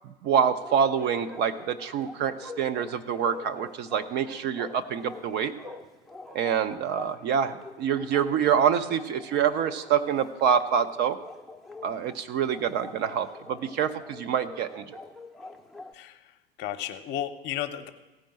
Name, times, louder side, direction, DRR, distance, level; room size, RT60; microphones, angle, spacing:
voice 1, 0.2-5.5 6.3-11.2 11.8-14.8, right 8 dB, 35° right, 12 dB, 0.6 m, -26 dB
Bark, 0.6-15.9, left 3 dB, ahead, 0.8 m, -45 dB
voice 2, 15.9-17.9, left 11 dB, 35° left, 8 dB, 0.9 m, -34 dB
15.5 x 5.3 x 8.7 m, 1.1 s
figure-of-eight pair, 85°, 31 cm